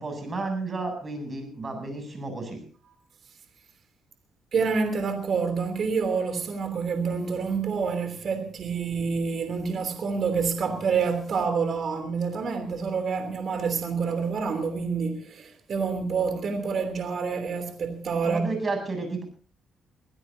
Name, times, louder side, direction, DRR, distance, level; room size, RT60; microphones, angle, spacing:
voice 1, 0.0-2.6 18.2-19.2, right 3 dB, 30° right, 7.9 m, -32 dB
voice 2, 4.5-18.4, right 5 dB, 55° right, 3.1 m, -27 dB
24.0 x 16.0 x 2.8 m
cardioid pair, 90°, 0 cm